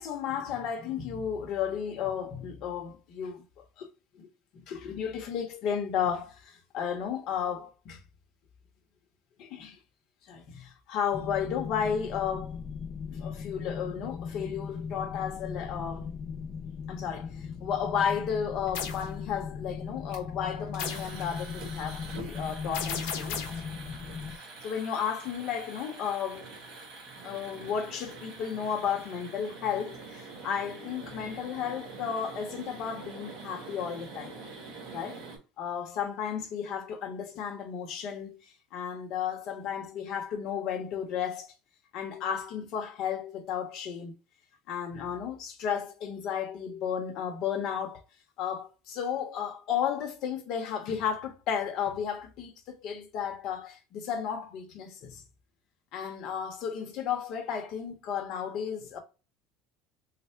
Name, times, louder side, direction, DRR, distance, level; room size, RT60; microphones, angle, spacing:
voice 1, 0.0-3.9 4.1-4.3 4.5-8.0 9.4-9.8 10.3-12.6 13.1-16.1 16.9-23.4 23.9-24.0 24.3-26.5 27.2-34.3 34.9-35.2 35.6-41.5 41.9-44.1 44.7-48.0 48.4-55.2 55.9-59.0, left 8 dB, 45° left, 0.8 m, -33 dB
sound 1, 11.1-24.4, left 6 dB, 25° left, 0.4 m, -38 dB
sound 2, 18.7-19.1 20.8-21.2 22.7-23.7, left 7 dB, 75° left, 0.9 m, -35 dB
sound 3, 18.7-19.0 20.1-20.3 20.7-35.4, right 4 dB, 55° right, 1.6 m, -45 dB
3.3 x 2.1 x 4.2 m
cardioid pair, 170°, 0 cm